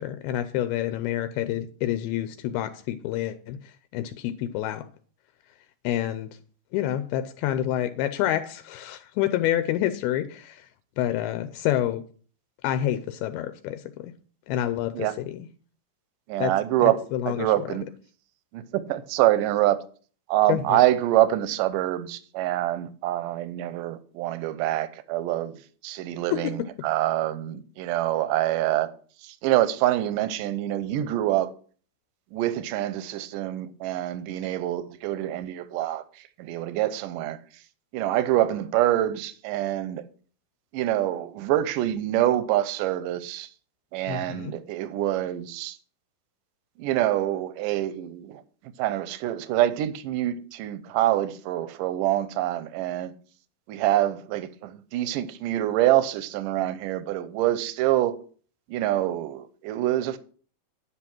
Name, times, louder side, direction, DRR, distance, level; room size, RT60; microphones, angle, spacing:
voice 1, 0.0-4.8 5.8-6.3 6.7-10.7 11.0-12.0 12.6-14.1 14.5-15.4 16.4-16.5 16.8-17.5 20.5-20.8 26.3-26.4 44.1-44.5, left 12 dB, 85° left, 2.5 m, -28 dB
voice 2, 16.3-17.0 17.3-17.9 18.5-19.8 20.3-28.9 29.2-31.5 32.3-37.4 37.9-40.1 40.7-43.5 43.9-45.8 46.8-48.4 48.8-53.1 53.7-58.2 58.7-60.2, right 14 dB, 80° right, 2.0 m, -25 dB
10.0 x 6.0 x 6.0 m
omnidirectional pair, 4.5 m